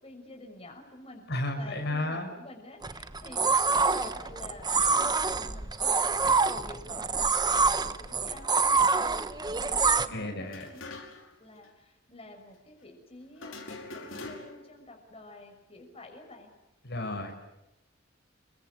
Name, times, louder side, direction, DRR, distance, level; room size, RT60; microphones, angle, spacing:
voice 1, 0.0-1.2 1.6-10.9 11.4-16.5, left 2 dB, 30° left, 3 dB, 6.2 m, -50 dB
voice 2, 1.3-2.3 9.9-10.7 16.8-17.3, left 1 dB, 60° left, 4 dB, 6.2 m, -33 dB
sound 1, 2.8-10.1, right 4 dB, 20° right, 1.2 m, -26 dB
sound 2, 10.5-11.4 11.6-11.7 13.4-14.7, left 2 dB, 80° left, 5.3 m, -43 dB
29.0 x 24.0 x 8.5 m, 0.91 s
head